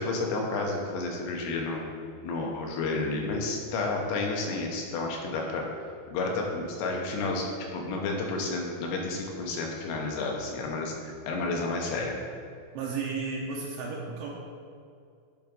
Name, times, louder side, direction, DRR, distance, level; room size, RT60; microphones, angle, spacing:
voice 1, 0.0-1.8 2.2-5.7 6.1-12.2, left 3 dB, 80° left, 0 dB, 3.0 m, -31 dB
voice 2, 12.7-14.3, right 4 dB, 75° right, -2 dB, 2.6 m, -33 dB
10.5 x 3.5 x 5.2 m, 2.4 s
omnidirectional pair, 5.1 m